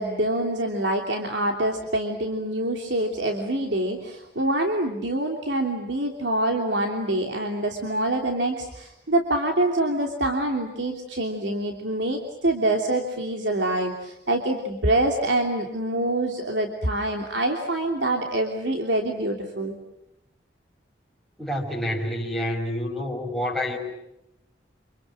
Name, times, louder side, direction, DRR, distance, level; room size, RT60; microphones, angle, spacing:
voice 1, 0.0-19.7, right 1 dB, 85° right, 2 dB, 3.1 m, -25 dB
voice 2, 21.4-23.8, left 1 dB, ahead, -2 dB, 5.9 m, -28 dB
29.0 x 27.0 x 7.5 m, 0.86 s
head